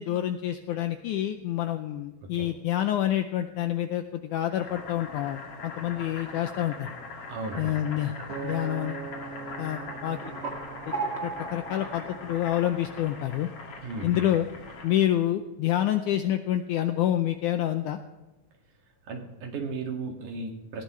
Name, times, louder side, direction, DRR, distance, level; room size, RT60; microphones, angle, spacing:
voice 1, 0.0-6.9 7.6-8.1 8.4-9.0 9.6-10.2 10.9-11.0 11.2-13.5 14.0-14.5 14.8-18.0, left 12 dB, 80° left, 8 dB, 1.8 m, -27 dB
Boiling, 4.5-15.1, left 3 dB, 45° left, 2.8 m, -41 dB
voice 2, 7.3-7.8 8.2-8.4 13.8-14.3 19.1-20.8, right 3 dB, 65° right, 2 dB, 3.5 m, -36 dB
Acoustic guitar, 8.3-12.6 13.2-13.5, right 5 dB, 80° right, 3.6 m, -42 dB
sound 1, 9.9-13.2, right 4 dB, 25° right, 1.7 m, -37 dB
19.0 x 15.5 x 3.2 m, 1.1 s
omnidirectional pair, 4.2 m